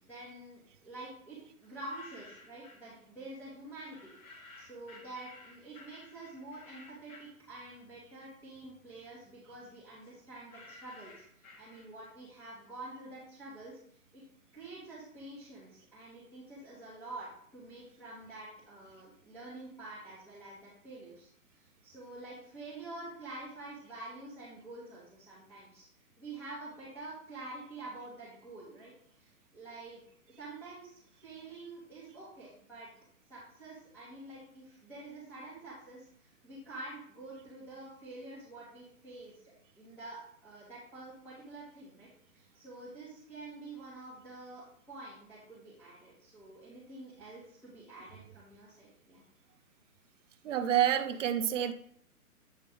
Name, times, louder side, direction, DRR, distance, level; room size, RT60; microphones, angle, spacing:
voice 1, 0.0-13.8 14.1-14.2 14.5-21.3 21.6-25.8 26.2-30.0 30.4-32.9 33.3-39.3 39.7-49.2, right 2 dB, 5° left, -11 dB, 1.2 m, -48 dB
sound 1, 1.6-2.9 3.9-8.1 8.5-12.2, left 3 dB, 65° left, 1.9 m, -55 dB
voice 2, 50.4-51.7, right 10 dB, 55° right, 7 dB, 0.6 m, -28 dB
8.0 x 3.3 x 5.1 m, 0.62 s
hypercardioid pair, 155°, 45 cm